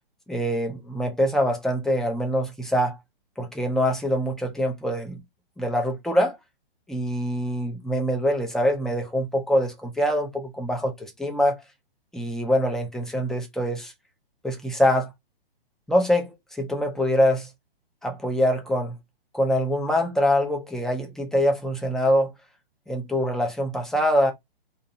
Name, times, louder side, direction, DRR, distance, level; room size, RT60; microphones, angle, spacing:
voice 1, 0.3-3.0 3.4-5.2 5.6-6.4 6.9-11.6 12.1-13.9 14.4-15.1 15.9-17.5 18.0-19.0 19.3-22.3 22.9-24.3, equal, ahead, 0.5 m, -24 dB
2.8 x 2.8 x 3.8 m
figure-of-eight pair, 120°, 30 cm